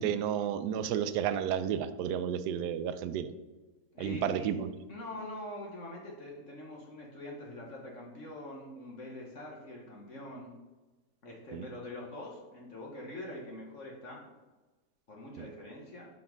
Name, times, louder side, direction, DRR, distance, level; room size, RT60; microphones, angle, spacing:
voice 1, 0.0-3.3 4.0-4.7 11.5-11.7 15.4-15.5, right 9 dB, 75° right, 12 dB, 1.1 m, -32 dB
voice 2, 3.9-4.5 4.9-10.5 11.2-14.3 15.1-16.1, left 1 dB, 50° left, -1 dB, 1.4 m, -44 dB
5.8 x 5.7 x 5.2 m, 1.2 s
omnidirectional pair, 1.8 m